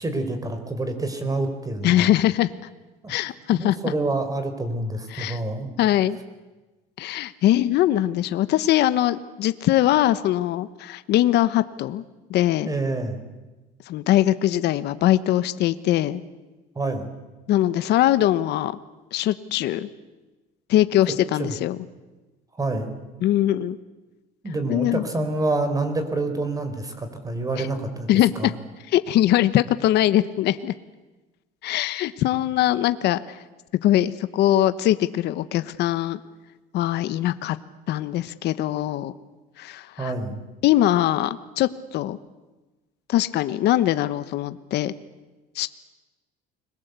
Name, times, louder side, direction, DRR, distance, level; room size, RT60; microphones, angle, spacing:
voice 1, 0.0-2.1 3.0-3.1 3.5-5.7 12.6-13.2 16.7-17.1 21.4-21.5 22.5-22.9 24.4-28.1 28.3-28.5 40.0-40.4, right 2 dB, 20° right, 8 dB, 4.6 m, -27 dB
voice 2, 1.8-2.5 3.1-3.8 5.1-5.4 5.8-6.2 7.0-12.0 12.3-12.7 13.9-16.2 17.5-18.8 19.1-19.9 20.7-21.8 23.2-23.8 24.7-25.1 27.6-27.7 28.1-28.5 28.9-30.7 31.6-33.4 33.8-36.2 36.7-37.6 37.9-39.1 39.6-40.1 40.6-42.2 43.1-44.9 45.5-45.7, left 13 dB, 65° left, 13 dB, 1.2 m, -21 dB
30.0 x 22.0 x 8.3 m, 1.2 s
cardioid pair, 115°, 19 cm